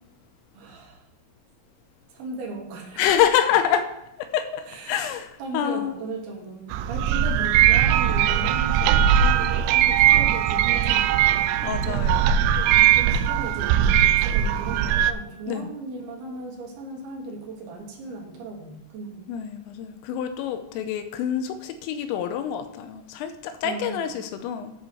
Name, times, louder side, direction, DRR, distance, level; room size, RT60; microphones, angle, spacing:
voice 1, 0.5-1.0 2.1-3.0 4.7-5.1 5.4-11.4 12.6-19.3 23.6-24.2, right 3 dB, 70° right, 0 dB, 3.6 m, -37 dB
voice 2, 3.0-3.9 4.2-6.0 11.6-12.5 15.5-15.7 19.3-24.7, left 9 dB, 85° left, 8 dB, 3.3 m, -26 dB
sound 1, 6.7-15.1, right 10 dB, 85° right, 2.8 m, -20 dB
10.0 x 4.9 x 6.8 m, 0.87 s
omnidirectional pair, 5.9 m